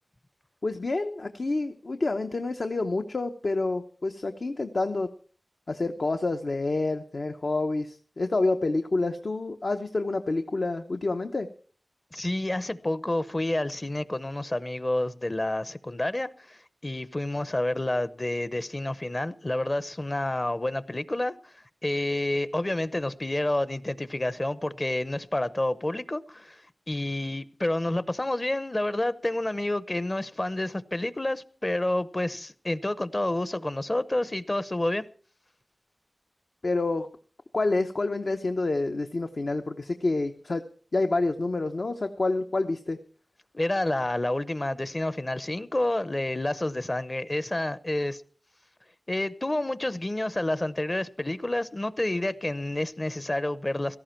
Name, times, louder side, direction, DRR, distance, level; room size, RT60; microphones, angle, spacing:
voice 1, 0.6-5.1 5.7-11.5 36.6-37.1 37.5-40.6 40.9-43.0, left 2 dB, 60° left, 0.8 m, -28 dB
voice 2, 12.1-21.5 21.8-26.6 26.9-35.0 43.5-48.2 49.1-54.0, left 1 dB, 30° left, 0.8 m, -29 dB
17.0 x 14.0 x 4.4 m
wide cardioid pair, 75°, 0 cm